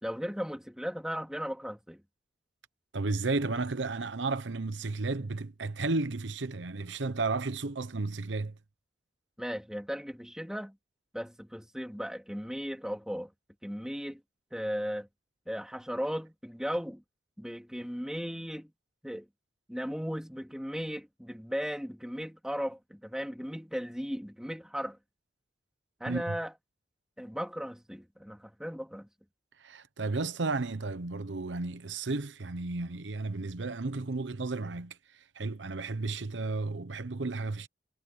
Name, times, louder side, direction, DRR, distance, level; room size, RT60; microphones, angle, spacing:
voice 1, 0.0-2.0 9.4-10.7 11.1-13.3 13.6-14.2 14.5-15.1 15.5-17.0 17.4-18.7 19.0-19.3 19.7-25.0 26.0-26.5 27.2-29.1, equal, 5° right, 3.6 m, -36 dB
voice 2, 2.9-8.5 26.1-26.4 29.6-37.7, right 3 dB, 85° right, 0.9 m, -33 dB
head